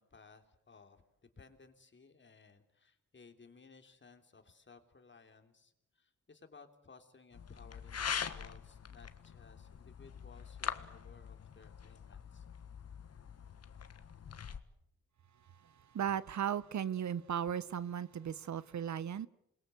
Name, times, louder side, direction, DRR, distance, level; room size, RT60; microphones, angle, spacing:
voice 1, 0.0-12.5, left 4 dB, 40° left, 3.2 m, -59 dB
sound 1, 7.3-14.6, left 7 dB, 55° left, 1.6 m, -43 dB
voice 2, 15.6-19.3, right 9 dB, 65° right, 0.9 m, -36 dB
28.0 x 22.0 x 7.9 m
cardioid pair, 90°, 30 cm